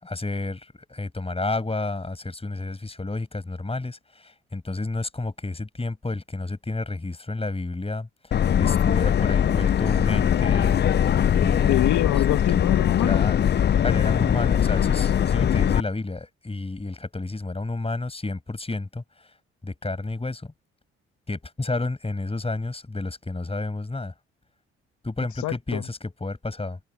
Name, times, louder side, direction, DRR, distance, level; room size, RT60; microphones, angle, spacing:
voice 1, 0.0-12.0 13.0-13.4 13.8-19.4 19.6-20.5 21.3-24.1 25.0-26.8, left 2 dB, 20° left, 6.0 m, -31 dB
Subway metro underground, 8.3-15.8, left 9 dB, 35° left, 0.5 m, -21 dB
voice 2, 11.6-13.2 25.4-25.8, left 15 dB, 70° left, 1.6 m, -25 dB
hypercardioid pair, 55°, 30 cm